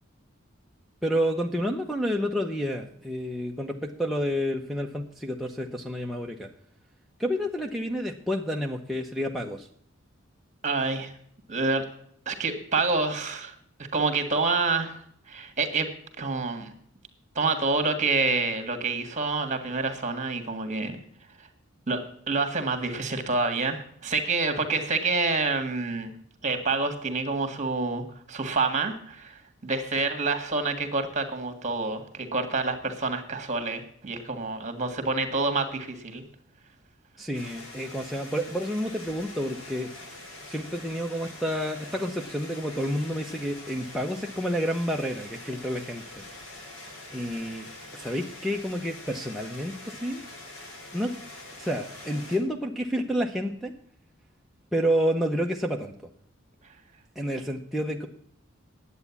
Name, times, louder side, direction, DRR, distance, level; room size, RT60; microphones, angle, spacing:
voice 1, 1.0-6.5 7.2-9.7 37.2-39.9 40.5-46.2 47.1-50.3 50.9-51.1 51.6-53.7 54.7-55.9 57.2-58.1, equal, ahead, -1 dB, 0.7 m, -29 dB
voice 2, 10.6-11.1 11.5-11.9 12.3-13.5 13.9-15.0 15.3-15.9 16.2-16.7 17.4-21.0 21.9-26.1 26.4-36.2, right 3 dB, 35° right, 8 dB, 1.7 m, -27 dB
sound 1, 37.3-52.4, left 2 dB, 85° left, 3.5 m, -44 dB
10.5 x 8.3 x 7.0 m, 0.66 s
head